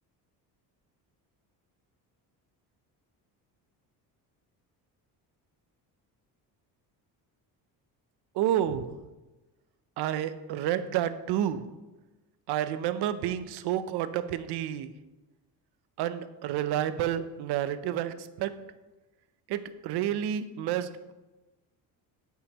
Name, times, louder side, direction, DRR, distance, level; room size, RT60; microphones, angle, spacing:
voice 1, 8.3-9.0 10.0-11.7 12.5-14.9 16.0-18.6 19.5-21.1, right 11 dB, 75° right, 12 dB, 0.6 m, -30 dB
12.5 x 5.6 x 2.9 m, 1.1 s
cardioid pair, 150°, 40 cm